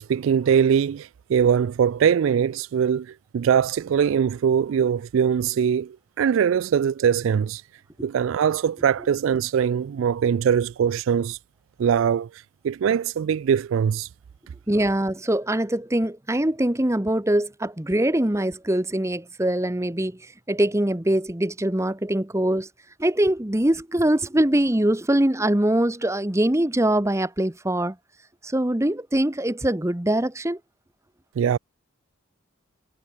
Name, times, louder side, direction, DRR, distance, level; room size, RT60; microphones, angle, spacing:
voice 1, 0.0-7.6 8.0-11.4 11.8-12.3 12.6-14.1 31.4-31.6, right 7 dB, 70° right, 0.3 m, -22 dB
voice 2, 14.7-20.2 20.5-22.7 23.0-28.0 28.4-30.6, right 1 dB, 15° right, 0.9 m, -23 dB
head